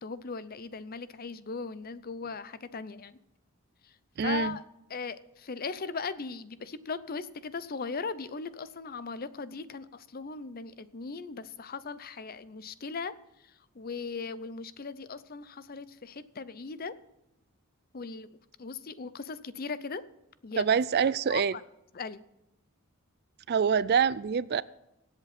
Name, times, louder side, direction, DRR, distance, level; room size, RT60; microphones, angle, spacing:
voice 1, 0.0-3.2 3.8-3.9 4.2-4.6 4.9-13.1 13.7-16.9 17.9-20.0 20.4-20.6 21.3-21.6 21.9-22.2, left 4 dB, 40° left, 0.6 m, -38 dB
voice 2, 4.2-4.6 20.6-21.5 23.5-24.6, right 6 dB, 45° right, 0.4 m, -25 dB
24.0 x 8.2 x 4.2 m
head